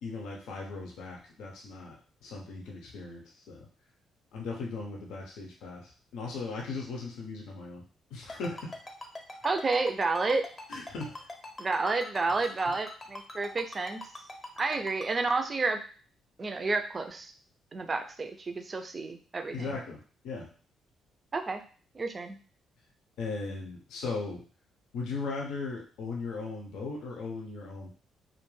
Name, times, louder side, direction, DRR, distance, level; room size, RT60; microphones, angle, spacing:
voice 1, 0.0-3.7 4.3-7.8 8.1-8.8 10.7-11.3 19.5-20.5 23.2-24.4 24.9-27.9, left 3 dB, 85° left, -1 dB, 0.6 m, -38 dB
Ringtone, 8.3-15.1, left 2 dB, 25° left, 0.7 m, -41 dB
voice 2, 9.4-10.4 11.6-14.0 14.6-15.8 16.4-17.3 17.7-19.7 21.3-21.6 21.9-22.4, right 3 dB, 35° right, 6 dB, 0.4 m, -30 dB
2.4 x 2.1 x 3.1 m, 0.39 s
cardioid pair, 90°, 0 cm